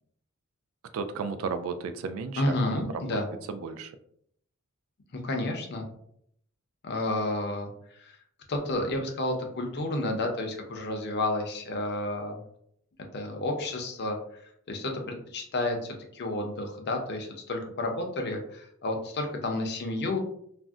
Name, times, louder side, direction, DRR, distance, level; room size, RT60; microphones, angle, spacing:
voice 1, 0.9-3.2 3.5-3.9, right 5 dB, 70° right, 9 dB, 0.3 m, -34 dB
voice 2, 2.4-3.3 5.1-5.9 6.8-8.2 8.5-12.4 13.1-14.4 14.7-20.2, left 2 dB, 50° left, 3 dB, 0.6 m, -31 dB
2.5 x 2.1 x 3.5 m, 0.69 s
head